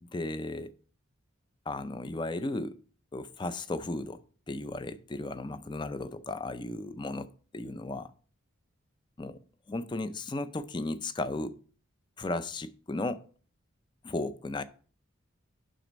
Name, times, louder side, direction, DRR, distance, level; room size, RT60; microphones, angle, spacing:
voice 1, 0.0-0.7 1.7-2.8 3.1-7.3 7.5-8.1 9.2-9.4 9.7-11.6 12.2-13.2 14.0-14.6, left 2 dB, 20° left, 0.4 m, -35 dB
7.5 x 6.0 x 5.1 m
head